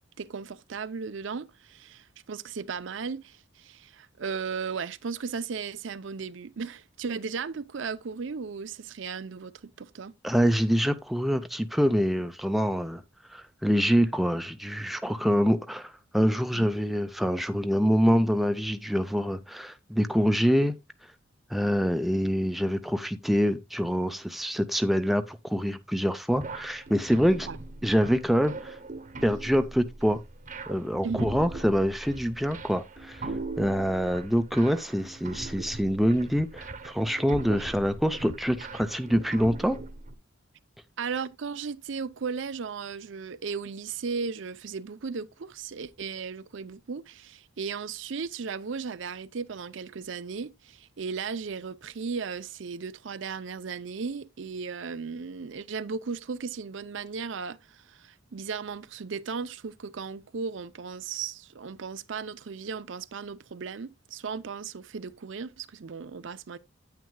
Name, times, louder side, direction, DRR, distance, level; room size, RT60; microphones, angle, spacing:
voice 1, 0.2-10.1 16.5-16.7 27.5-27.6 31.0-31.3 41.0-66.6, right 5 dB, 65° right, 0.5 m, -36 dB
voice 2, 10.2-13.0 13.3-20.8 21.5-27.5 27.8-28.8 29.2-30.2 30.7-33.3 33.6-39.8, equal, ahead, 0.5 m, -25 dB
sound 1, 26.3-40.1, right 2 dB, 40° right, 0.9 m, -40 dB
9.3 x 9.0 x 2.2 m
head